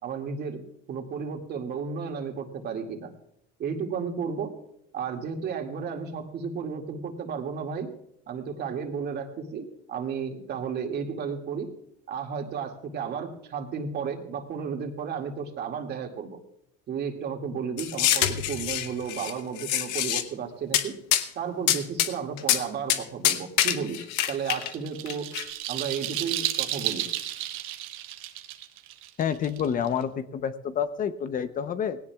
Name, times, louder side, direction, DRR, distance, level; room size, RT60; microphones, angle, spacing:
voice 1, 0.0-3.1 3.6-4.5 4.9-7.9 8.3-11.7 12.1-16.4 16.9-20.9 21.4-25.3 25.7-27.1, right 6 dB, 50° right, 3 dB, 2.2 m, -33 dB
sound 1, 17.8-19.3 19.6-20.2 20.7-20.8 21.1-21.3 21.7-22.1 22.4-22.6 22.9-23.0 23.2-24.7 25.1-25.4, left 12 dB, 90° left, 0.9 m, -25 dB
sound 2, 24.2-30.0, right 13 dB, 75° right, 1.2 m, -33 dB
voice 2, 29.2-32.0, left 8 dB, 40° left, 11 dB, 0.8 m, -28 dB
19.0 x 17.0 x 2.4 m, 0.74 s
supercardioid pair, 105°, 21 cm